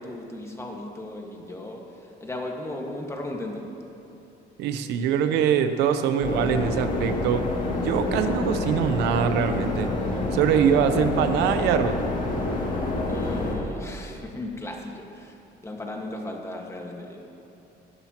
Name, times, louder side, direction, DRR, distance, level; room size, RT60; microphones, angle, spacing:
voice 1, 0.0-3.6 13.1-15.4 15.6-17.2, left 1 dB, 15° left, 0 dB, 1.7 m, -36 dB
voice 2, 4.6-9.9 10.3-12.0, right 8 dB, 90° right, 9 dB, 0.8 m, -23 dB
sound 1, 6.2-13.6, left 2 dB, 50° left, 2.5 m, -27 dB
19.0 x 11.5 x 3.0 m, 2.8 s
cardioid pair, 110°, 17 cm